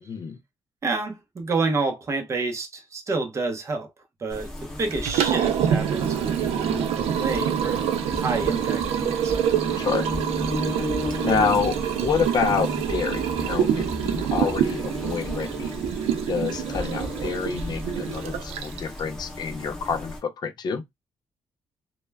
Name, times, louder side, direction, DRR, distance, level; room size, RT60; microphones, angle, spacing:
voice 1, 0.0-0.4 9.8-10.1 11.2-15.7 16.3-20.8, left 6 dB, 45° left, 0.4 m, -28 dB
voice 2, 0.8-3.9 4.2-7.9 8.2-9.4, right 3 dB, 30° right, 0.6 m, -29 dB
sound 1, 4.3-20.2, left 1 dB, 5° left, 0.8 m, -34 dB
Liquid, 4.9-19.0, right 9 dB, 85° right, 0.4 m, -26 dB
2.1 x 2.1 x 3.3 m
cardioid pair, 145°, 10 cm